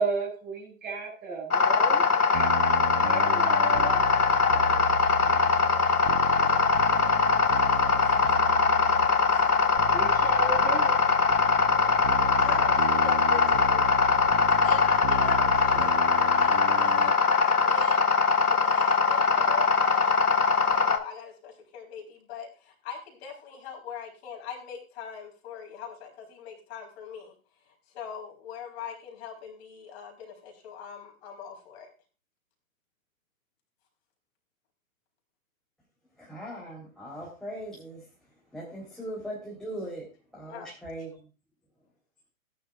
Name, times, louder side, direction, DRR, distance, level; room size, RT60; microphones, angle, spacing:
voice 1, 0.0-2.5 3.0-3.9 9.8-11.0, right 4 dB, 20° right, -1 dB, 7.1 m, -33 dB
sound 1, 1.5-21.0, left 4 dB, 85° left, 1.5 m, -22 dB
sound 2, 2.3-17.1, right 9 dB, 50° right, 0.9 m, -36 dB
voice 2, 3.7-4.8 6.4-6.8 7.1-9.8 12.3-13.8 14.6-18.1 18.5-20.4 20.7-27.3 27.9-31.9 40.5-40.7, left 7 dB, 45° left, 0 dB, 4.5 m, -41 dB
voice 3, 11.7-12.8 36.2-38.1 38.5-41.3, right 1 dB, ahead, -6 dB, 3.8 m, -40 dB
17.0 x 11.0 x 2.5 m, 0.32 s
hypercardioid pair, 120°, 43 cm